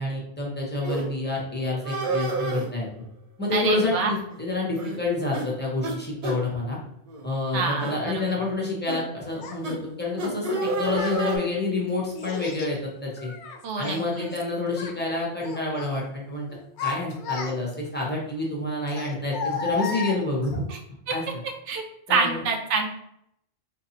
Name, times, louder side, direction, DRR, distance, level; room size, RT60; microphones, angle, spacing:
voice 1, 0.0-2.9 3.4-6.8 7.2-13.3 13.8-16.5 16.8-20.6 21.1-21.2 22.1-22.4, left 2 dB, 10° left, -3 dB, 0.7 m, -28 dB
sound 1, 0.8-1.0 1.8-2.7 3.6-4.0 4.3-4.4 4.8-5.0 5.3-5.5 5.8-6.0 6.2-6.4 7.1-7.3 7.8-8.0 8.9-9.0 9.6-9.8 10.2-11.4, right 2 dB, 45° right, 0.6 m, -29 dB
voice 2, 3.5-4.1 7.5-8.2 13.6-14.3 20.7-20.8 21.1-21.2 21.7-21.8 22.1-22.9, right 4 dB, 85° right, 3 dB, 1.0 m, -26 dB
Child speech kid speaking, 9.4-9.6 10.5-11.2 12.2-12.8 13.2-14.4 14.7-15.0 15.4-16.0 16.5-17.9 18.9-20.6, left 5 dB, 75° left, 0.9 m, -33 dB
3.9 x 2.7 x 2.8 m, 0.75 s
omnidirectional pair, 1.2 m